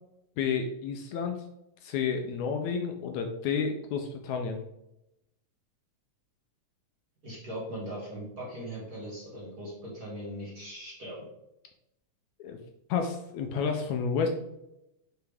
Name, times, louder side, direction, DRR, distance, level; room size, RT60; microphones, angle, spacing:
voice 1, 0.4-1.4 1.8-4.6 12.4-12.6 12.9-14.3, left 6 dB, 75° left, 4 dB, 1.9 m, -30 dB
voice 2, 7.2-11.3, equal, 35° right, -5 dB, 2.0 m, -39 dB
6.7 x 4.5 x 3.5 m, 0.85 s
omnidirectional pair, 3.5 m